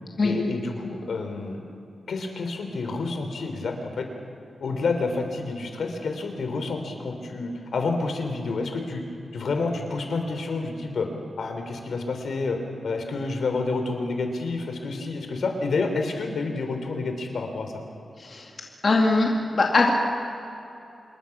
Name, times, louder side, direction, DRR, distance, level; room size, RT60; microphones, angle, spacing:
voice 1, 0.2-1.6 2.1-4.1 4.6-9.0 9.3-11.1 11.4-12.6 12.8-17.7, left 3 dB, 70° left, 5 dB, 3.4 m, -29 dB
voice 2, 18.2-18.5 18.8-19.9, left 3 dB, 40° left, -1 dB, 2.4 m, -21 dB
27.0 x 22.0 x 6.0 m, 2.8 s
wide cardioid pair, 160°, 0 cm